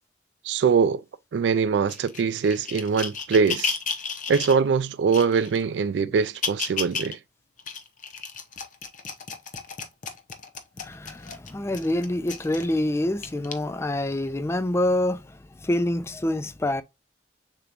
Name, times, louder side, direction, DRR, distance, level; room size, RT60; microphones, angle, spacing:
voice 1, 0.4-1.0 1.3-3.8 4.3-7.2, right 5 dB, 85° right, 0.3 m, -22 dB
sound 1, 1.9-4.6 5.1-5.6 6.2-7.2 7.6-12.7 13.2-13.5 14.3-14.4, left 6 dB, 45° left, 0.7 m, -33 dB
voice 2, 10.8-15.2 15.6-16.8, left 1 dB, 15° left, 0.4 m, -26 dB
6.6 x 3.0 x 2.4 m
head